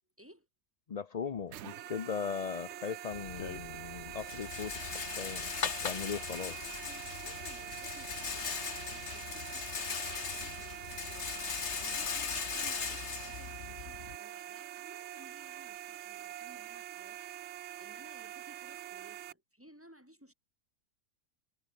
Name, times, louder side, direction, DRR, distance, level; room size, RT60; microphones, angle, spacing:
voice 1, 0.9-6.6, left 6 dB, 65° left, 0.3 m, -39 dB
sound 1, 1.5-19.3, right 12 dB, 65° right, 0.7 m, -45 dB
Rattle, 3.1-14.2, left 6 dB, 50° left, 1.6 m, -39 dB
voice 2, 6.1-20.3, equal, 10° right, 6.4 m, -58 dB
omnidirectional pair, 1.7 m